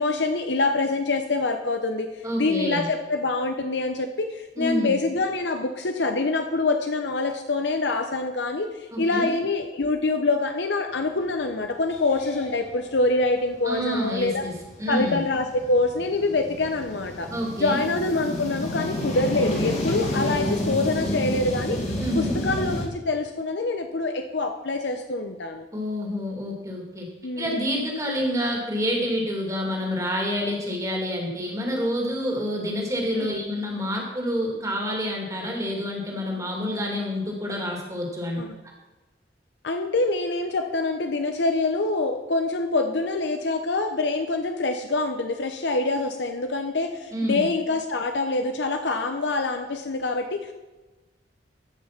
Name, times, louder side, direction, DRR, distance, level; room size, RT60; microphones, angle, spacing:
voice 1, 0.0-2.1 2.4-14.4 14.9-17.3 17.6-21.8 22.1-25.6 27.2-27.7 33.2-33.4 38.4-38.5 39.6-50.4, left 3 dB, 70° left, 6 dB, 0.8 m, -25 dB
voice 2, 2.2-2.9 4.6-5.0 8.9-9.3 13.6-15.2 17.3-17.9 22.0-22.4 25.7-27.1 27.4-38.4 47.1-47.5, equal, 20° right, 0 dB, 2.4 m, -28 dB
sound 1, 11.3-11.4 11.8-22.8, equal, 40° left, 2.1 m, -31 dB
14.5 x 5.8 x 5.9 m, 1.1 s
head